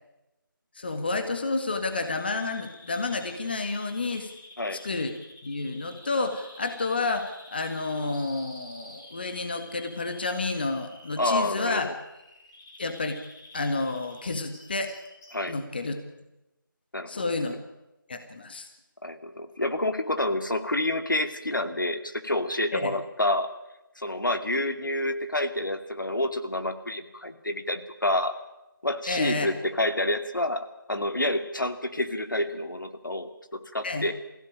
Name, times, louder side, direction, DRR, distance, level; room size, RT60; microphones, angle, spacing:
voice 1, 0.8-4.3 4.7-5.1 5.4-11.9 12.8-13.2 13.5-14.9 15.5-16.0 17.1-17.6 18.1-18.7 22.7-22.9 29.1-29.5 33.8-34.1, left 3 dB, 30° left, 7 dB, 1.8 m, -30 dB
Bird vocalization bird call bird song, 1.5-15.5, left 1 dB, 10° left, 3.7 m, -50 dB
voice 2, 11.2-11.9 15.3-15.5 16.9-17.2 19.0-23.5 24.0-28.3 28.8-34.1, left 1 dB, 65° left, 8 dB, 2.4 m, -28 dB
23.0 x 16.5 x 8.9 m, 0.96 s
figure-of-eight pair, 165°, 11 cm